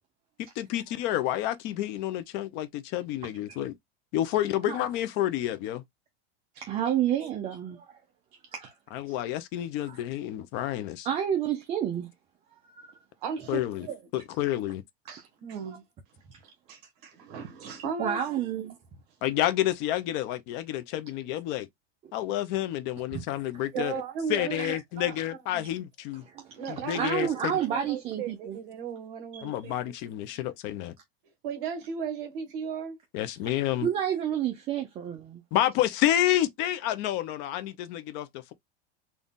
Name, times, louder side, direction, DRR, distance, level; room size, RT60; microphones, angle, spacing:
voice 1, 0.6-3.8 4.1-5.8 8.9-11.1 13.5-13.9 14.1-14.8 19.2-21.7 22.1-24.0 24.3-26.2 26.7-27.5 29.4-30.9 33.1-33.9 35.5-38.5, left 13 dB, 35° left, 0.5 m, -29 dB
voice 2, 6.6-8.0 8.5-8.7 9.8-10.0 11.0-12.1 12.8-12.9 18.0-18.8 23.1-23.2 24.6-24.7 26.3-26.4 26.9-28.6 33.8-35.4, right 9 dB, 20° right, 0.6 m, -29 dB
voice 3, 13.2-14.0 15.1-15.8 16.4-18.4 23.7-25.7 26.6-29.9 31.4-33.0, right 6 dB, 55° right, 1.5 m, -37 dB
4.0 x 2.3 x 3.6 m
supercardioid pair, 165°, 32 cm